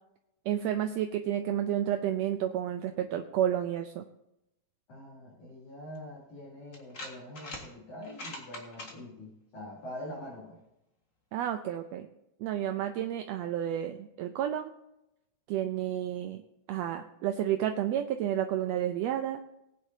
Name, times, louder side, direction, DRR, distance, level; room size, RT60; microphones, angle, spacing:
voice 1, 0.5-4.0 11.3-12.1 12.4-14.7 15.5-16.4 16.7-19.4, right 11 dB, 75° right, 7 dB, 1.7 m, -31 dB
voice 2, 4.9-10.6, left 1 dB, 80° left, -7 dB, 4.9 m, -44 dB
sound 1, 5.9-6.0 6.7-7.6 8.0-8.9, left 2 dB, 30° left, 1.6 m, -42 dB
19.5 x 9.5 x 2.8 m, 0.87 s
omnidirectional pair, 3.3 m